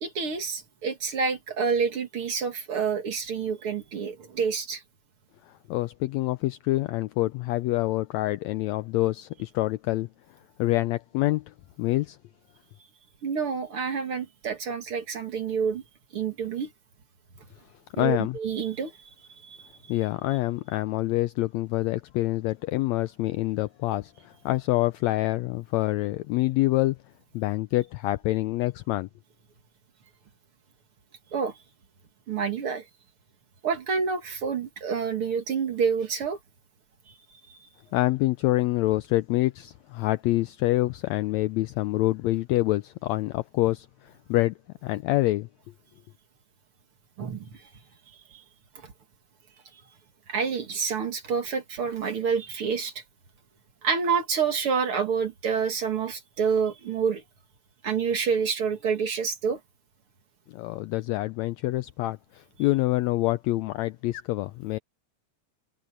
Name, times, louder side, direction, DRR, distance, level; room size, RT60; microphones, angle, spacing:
voice 1, 0.0-4.8 13.2-15.8 16.1-16.7 18.0-18.9 19.4-19.7 31.3-31.6 32.3-32.9 33.6-36.4 37.5-37.6 47.2-47.6 48.1-48.4 48.8-48.9 50.3-53.0 53.8-57.2 57.8-59.6, right 6 dB, 50° right, 2.4 m, -28 dB
voice 2, 5.7-10.1 10.6-12.2 18.0-18.4 19.9-27.0 27.3-29.1 37.9-44.5 44.8-45.5 60.5-64.8, left 18 dB, 90° left, 1.5 m, -26 dB
omnidirectional pair, 3.7 m